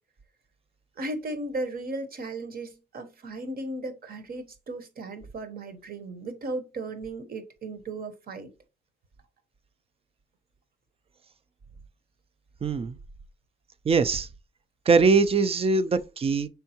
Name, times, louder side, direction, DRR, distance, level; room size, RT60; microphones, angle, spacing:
voice 1, 1.0-8.5, right 2 dB, 50° right, 1.0 m, -36 dB
voice 2, 12.6-13.0 13.9-14.3 14.9-16.5, right 4 dB, 30° right, 0.4 m, -22 dB
4.5 x 3.5 x 2.8 m
cardioid pair, 90°, 20 cm